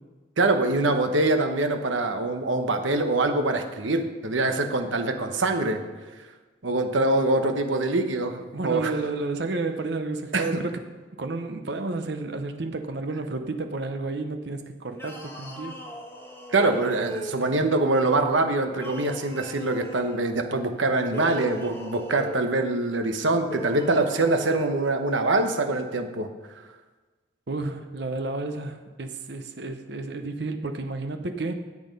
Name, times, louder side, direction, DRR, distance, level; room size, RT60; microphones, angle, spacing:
voice 1, 0.4-5.8 6.6-8.9 10.3-10.6 16.5-26.3, right 2 dB, 80° right, 6 dB, 1.1 m, -24 dB
voice 2, 8.5-10.8 11.2-15.8 27.5-31.5, right 3 dB, 60° right, 7 dB, 0.8 m, -31 dB
sound 1, 14.9-17.7 18.7-20.2 21.0-22.5 23.4-24.9, equal, 10° left, 1.3 m, -38 dB
13.0 x 8.5 x 5.3 m, 1.3 s
head